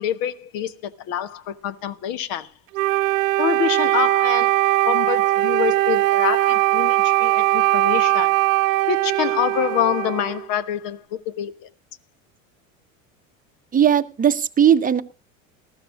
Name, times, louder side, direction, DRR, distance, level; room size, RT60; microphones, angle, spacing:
voice 1, 0.0-2.5 3.4-8.3 8.9-11.7, left 10 dB, 55° left, 1.1 m, -26 dB
Wind instrument woodwind instrument, 2.7-10.5, right 17 dB, 75° right, 0.5 m, -20 dB
voice 2, 13.7-15.0, right 9 dB, 20° right, 0.9 m, -17 dB
19.5 x 14.0 x 2.4 m
hypercardioid pair, 80°, 40 cm